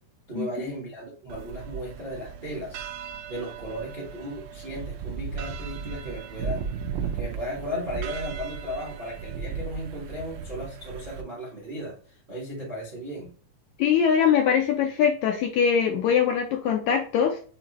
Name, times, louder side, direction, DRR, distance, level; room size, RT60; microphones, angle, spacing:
voice 1, 0.3-2.8 3.3-6.7 7.1-13.3, equal, 35° right, -3 dB, 0.7 m, -36 dB
sound 1, 1.3-11.2, right 6 dB, 80° right, 2.2 m, -36 dB
voice 2, 13.8-17.4, left 7 dB, 75° left, 3 dB, 1.7 m, -22 dB
6.5 x 2.7 x 3.0 m, 0.42 s
omnidirectional pair, 3.8 m